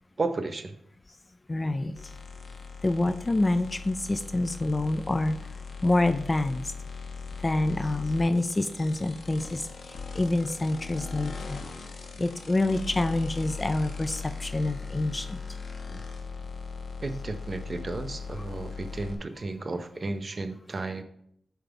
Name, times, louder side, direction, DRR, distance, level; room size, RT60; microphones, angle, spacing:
voice 1, 0.2-0.7 15.9-16.0 17.0-21.0, right 3 dB, 40° right, 9 dB, 0.6 m, -33 dB
voice 2, 1.5-1.9 2.8-5.4 5.8-6.6 7.4-9.6 10.2-11.6 12.2-15.4, left 2 dB, 25° left, 11 dB, 0.3 m, -27 dB
sound 1, 1.9-19.1, left 5 dB, 70° left, 0.9 m, -39 dB
7.4 x 3.5 x 4.5 m, 0.71 s
wide cardioid pair, 105°, 0 cm